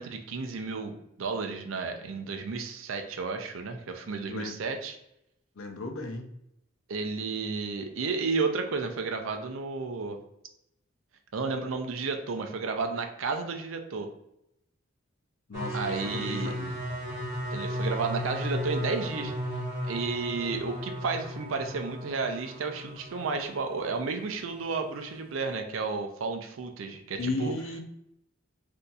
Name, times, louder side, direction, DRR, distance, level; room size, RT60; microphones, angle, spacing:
voice 1, 0.0-5.0 6.9-10.2 11.3-14.1 15.7-16.5 17.5-19.3 19.8-27.5, right 4 dB, 80° right, 5 dB, 0.5 m, -32 dB
voice 2, 5.6-6.3 15.5-16.7 27.2-27.8, left 2 dB, 80° left, 4 dB, 0.6 m, -35 dB
sound 1, 15.5-24.1 24.4-25.0, equal, 45° right, 1.1 m, -35 dB
2.7 x 2.3 x 3.9 m, 0.80 s
head